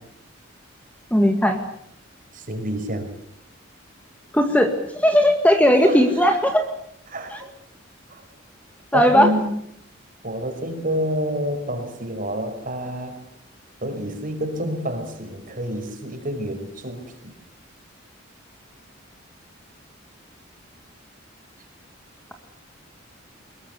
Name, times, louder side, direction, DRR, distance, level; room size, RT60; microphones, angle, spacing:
voice 1, 1.1-1.6 4.3-6.6 7.3-7.4 8.9-9.3, equal, 5° left, 5 dB, 2.0 m, -17 dB
voice 2, 2.3-3.1 5.8-6.0 7.1-7.5 8.1-8.2 8.9-9.4 10.2-13.2 13.8-17.3, equal, 45° right, 6 dB, 5.3 m, -28 dB
24.0 x 21.5 x 8.4 m, 0.72 s
head